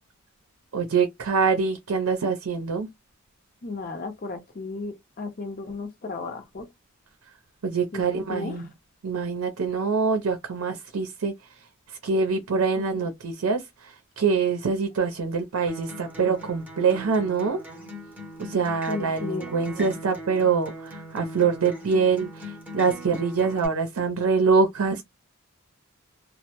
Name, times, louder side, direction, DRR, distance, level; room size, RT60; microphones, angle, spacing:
voice 1, 0.7-2.9 7.6-8.7 9.0-11.3 12.0-13.6 14.2-17.6 18.4-25.0, right 5 dB, 80° right, 0.5 m, -24 dB
voice 2, 3.6-6.7 7.9-8.0 8.3-8.6 12.8-13.1 18.9-19.5 19.8-19.9, left 3 dB, 40° left, 0.6 m, -34 dB
Acoustic guitar, 15.7-23.7, equal, 10° right, 0.6 m, -40 dB
2.1 x 2.0 x 2.9 m
head